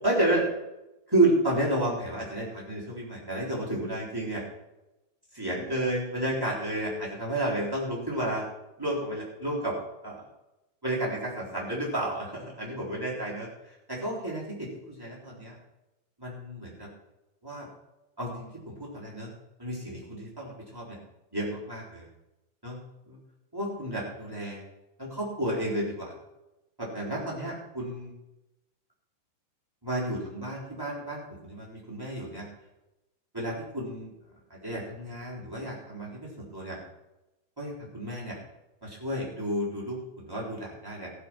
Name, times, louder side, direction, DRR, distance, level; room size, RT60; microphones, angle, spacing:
voice 1, 0.0-0.5 1.1-4.4 5.3-8.4 8.8-9.7 10.0-10.2 10.8-15.5 16.2-16.9 17.4-17.7 18.2-19.3 19.6-21.0 21.3-22.1 22.6-22.8 23.1-23.2 23.5-24.6 25.0-26.1 26.8-28.1 29.8-32.5 33.3-34.1 34.5-36.8 37.6-38.4 38.8-41.1, right 1 dB, 5° right, -5 dB, 2.8 m, -31 dB
15.5 x 7.3 x 6.0 m, 0.96 s
omnidirectional pair, 5.5 m